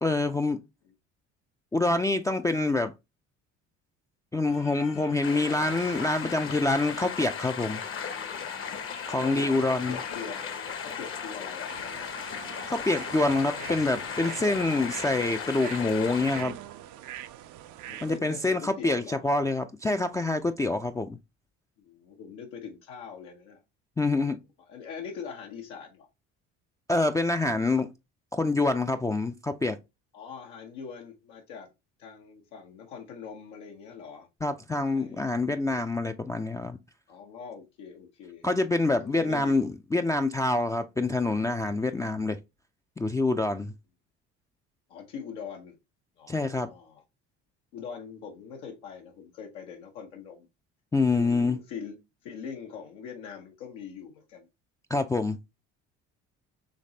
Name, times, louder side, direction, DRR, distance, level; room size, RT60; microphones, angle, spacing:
voice 1, 0.0-0.6 1.7-2.9 4.3-7.8 9.1-10.0 12.7-16.6 18.0-21.2 24.0-24.4 26.9-27.9 28.3-29.8 34.4-36.8 38.4-42.4 43.0-43.7 46.3-46.7 50.9-51.6 54.9-55.4, left 2 dB, 10° left, 0.3 m, -26 dB
Singing / Church bell, 4.5-16.4, left 6 dB, 65° left, 1.9 m, -47 dB
sound 1, 5.2-16.4, left 7 dB, 40° left, 0.8 m, -36 dB
voice 2, 9.9-10.4 10.8-11.7 17.9-19.2 21.8-23.6 24.7-26.1 30.1-31.7 32.0-34.3 34.9-35.2 37.1-38.4 39.0-39.6 44.9-45.8 46.2-47.0 47.7-50.5 51.1-52.0 52.2-54.5, left 6 dB, 85° left, 1.0 m, -42 dB
sound 2, 11.7-18.2, right 12 dB, 65° right, 0.5 m, -44 dB
5.2 x 3.2 x 2.7 m
supercardioid pair, 80°, 32 cm